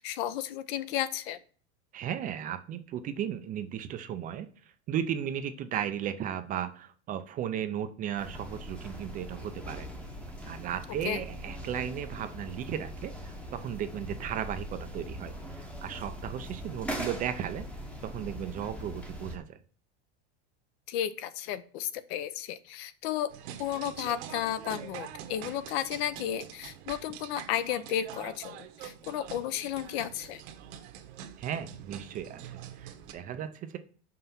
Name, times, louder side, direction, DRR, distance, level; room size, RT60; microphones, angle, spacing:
voice 1, 0.0-1.4 11.0-11.2 20.9-23.3 23.6-30.4, left 11 dB, 65° left, 13 dB, 0.8 m, -33 dB
voice 2, 1.9-4.5 4.9-9.9 10.5-17.7 18.0-19.6 31.4-33.8, right 9 dB, 25° right, 9 dB, 0.4 m, -35 dB
sound 1, 8.2-19.4, equal, 5° left, 0.8 m, -41 dB
sound 2, 23.3-33.1, right 10 dB, 70° right, 1.3 m, -45 dB
5.6 x 5.4 x 5.8 m, 0.42 s
supercardioid pair, 160°, 34 cm